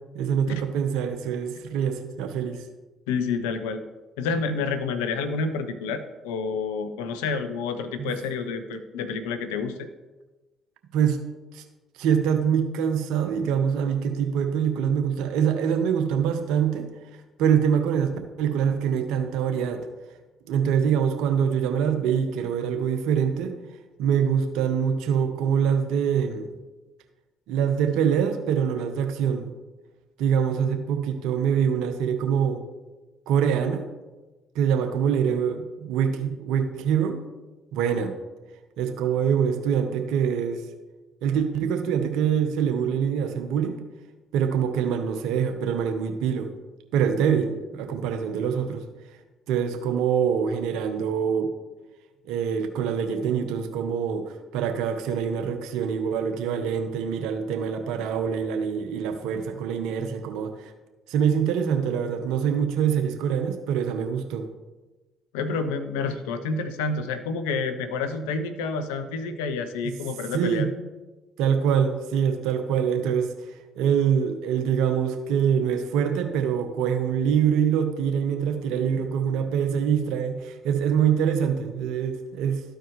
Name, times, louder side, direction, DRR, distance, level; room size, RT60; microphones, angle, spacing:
voice 1, 0.1-2.6 8.0-8.1 10.9-11.2 11.5-11.6 12.0-16.9 17.4-19.9 20.5-23.5 24.0-26.5 27.5-29.5 30.2-32.6 33.3-33.8 34.5-37.2 37.7-38.1 38.8-40.6 41.2-43.7 44.3-46.5 46.9-48.8 49.5-51.5 52.2-60.7 61.1-64.5 69.8-69.9 70.3-70.7 71.4-73.3 73.8-82.6, right 7 dB, 75° right, 6 dB, 0.9 m, -24 dB
voice 2, 3.1-3.8 4.2-9.9 65.3-70.7, left 4 dB, 85° left, 10 dB, 0.6 m, -29 dB
13.0 x 4.6 x 3.1 m, 1.2 s
hypercardioid pair, 55°, 0 cm